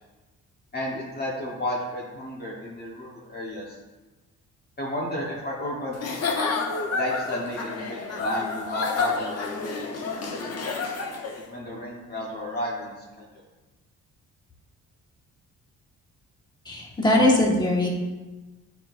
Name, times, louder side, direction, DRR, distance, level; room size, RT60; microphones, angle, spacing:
voice 1, 0.7-3.8 4.8-6.0 6.9-10.7 11.4-13.4, left 1 dB, 35° left, -4 dB, 1.2 m, -33 dB
Giggle / Chuckle chortle, 5.9-11.4, left 4 dB, 55° left, 0.9 m, -29 dB
voice 2, 16.6-17.9, left 1 dB, 15° left, -2 dB, 1.5 m, -21 dB
8.7 x 4.5 x 2.5 m, 1.2 s
cardioid pair, 90°, 30 cm